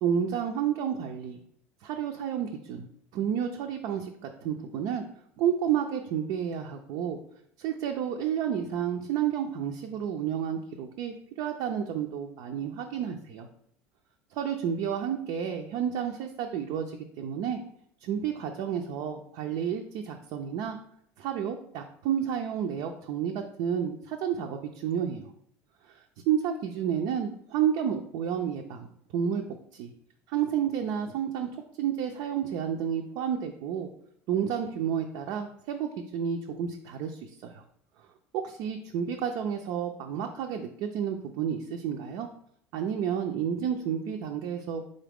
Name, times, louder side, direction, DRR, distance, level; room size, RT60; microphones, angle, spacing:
voice 1, 0.0-1.4 1.8-5.0 5.4-7.2 7.6-13.5 14.3-17.6 18.0-20.8 21.2-25.3 26.3-28.9 29.1-29.5 29.7-29.9 30.3-31.5 31.8-33.9 34.3-37.6 38.3-42.3 42.7-44.9, right 8 dB, 65° right, 3 dB, 0.4 m, -30 dB
4.0 x 3.8 x 3.5 m, 0.68 s
supercardioid pair, 90°, 7 cm